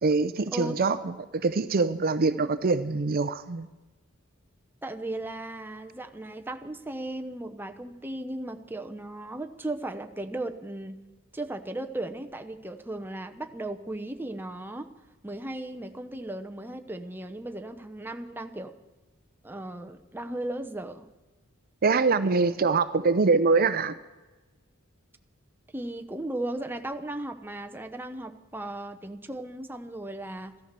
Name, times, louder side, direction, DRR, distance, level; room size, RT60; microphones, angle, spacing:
voice 1, 0.0-3.7 21.8-23.9, right 4 dB, 45° right, 12 dB, 0.6 m, -24 dB
voice 2, 4.8-11.0 11.3-14.9 15.2-18.7 19.4-21.1 25.7-30.5, right 1 dB, 10° right, 6 dB, 0.8 m, -36 dB
14.0 x 13.5 x 6.7 m, 1.2 s
head